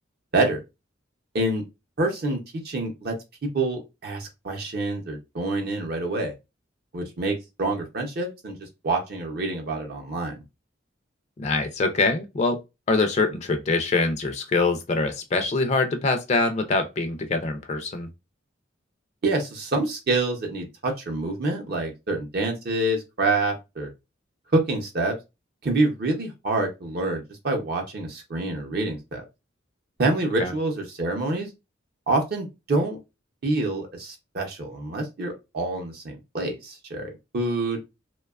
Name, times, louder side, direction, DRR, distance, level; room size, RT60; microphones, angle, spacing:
voice 1, 2.0-2.4 2.6-3.2 3.4-6.3 6.9-10.4 19.2-23.9 24.5-25.1 25.6-29.2 30.0-31.5 32.1-33.0 33.4-37.8, right 2 dB, 55° right, 0.5 m, -27 dB
voice 2, 11.4-12.6 12.9-18.1 30.4-30.5, left 3 dB, 35° left, 0.3 m, -24 dB
2.7 x 2.2 x 2.3 m
head